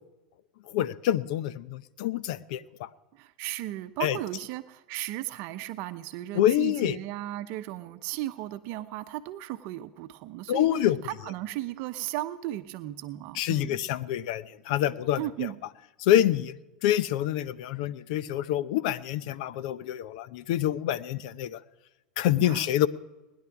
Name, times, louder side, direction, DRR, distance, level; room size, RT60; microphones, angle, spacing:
voice 1, 0.7-2.9 4.0-4.2 6.3-7.0 10.5-11.0 13.3-15.5 16.0-21.6 22.2-22.9, left 12 dB, 65° left, 17 dB, 0.7 m, -27 dB
voice 2, 3.1-10.7 11.0-13.8 15.2-15.6 22.4-22.9, right 15 dB, 55° right, 10 dB, 0.8 m, -36 dB
20.0 x 10.5 x 5.9 m, 1.1 s
hypercardioid pair, 100°, 4 cm